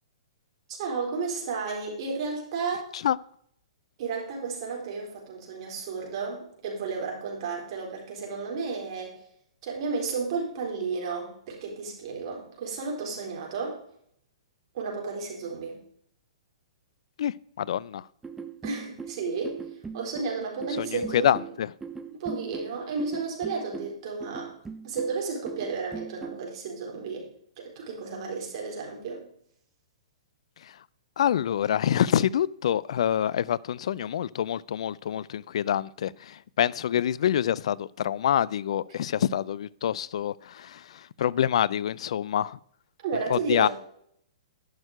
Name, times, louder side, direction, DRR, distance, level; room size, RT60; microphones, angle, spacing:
voice 1, 0.7-2.9 4.0-9.1 9.6-13.8 14.7-15.8 18.6-19.7 19.9-21.4 22.1-24.6 24.8-27.3 27.6-29.2 43.0-43.7, right 4 dB, 55° right, 4.2 m, -32 dB
voice 2, 17.2-18.1 20.8-21.7 30.6-30.8 31.2-42.6 43.3-43.7, left 10 dB, 65° left, 0.4 m, -26 dB
sound 1, 18.2-26.5, right 5 dB, 10° right, 0.7 m, -40 dB
11.0 x 6.3 x 4.9 m
hypercardioid pair, 125°, 3 cm